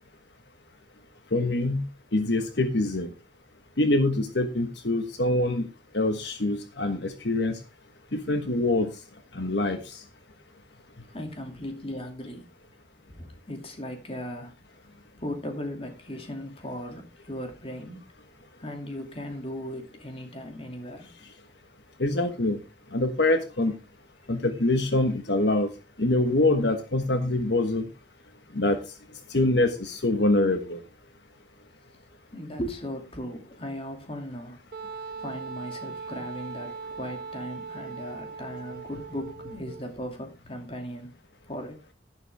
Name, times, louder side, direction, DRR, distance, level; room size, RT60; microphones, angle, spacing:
voice 1, 1.3-1.9 2.1-3.1 3.8-5.7 5.9-7.6 8.1-8.9 9.3-10.0 22.0-22.6 22.9-23.7 24.3-25.7 26.0-27.9 28.5-28.8 29.3-30.8, left 2 dB, 70° left, 7 dB, 1.3 m, -24 dB
voice 2, 11.1-12.5 13.1-14.5 15.2-18.0 18.6-21.1 32.3-34.6 35.2-41.1 41.5-41.8, equal, 30° left, 5 dB, 2.5 m, -37 dB
Wind instrument woodwind instrument, 34.7-39.9, right 5 dB, 55° right, 1.2 m, -39 dB
11.5 x 11.5 x 3.5 m, 0.28 s
head